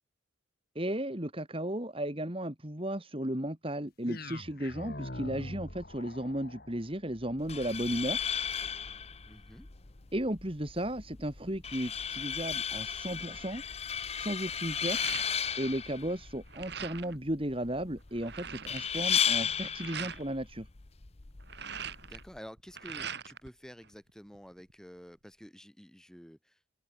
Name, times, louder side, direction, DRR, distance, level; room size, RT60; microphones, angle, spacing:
voice 1, 0.7-8.2 10.1-13.6 14.1-15.0 15.3-20.7, right 1 dB, 25° right, 2.6 m, -35 dB
sound 1, 4.0-12.2, left 1 dB, 50° left, 6.0 m, -47 dB
sound 2, 7.4-22.4, left 8 dB, 30° left, 0.7 m, -35 dB
voice 2, 9.3-9.7 22.1-26.6, equal, 5° left, 7.5 m, -50 dB
sound 3, 13.3-13.6 14.0-15.7 16.0-17.2 17.7-17.8 18.0-20.2 21.2-23.5 23.8-24.7, right 7 dB, 55° right, 4.6 m, -42 dB
head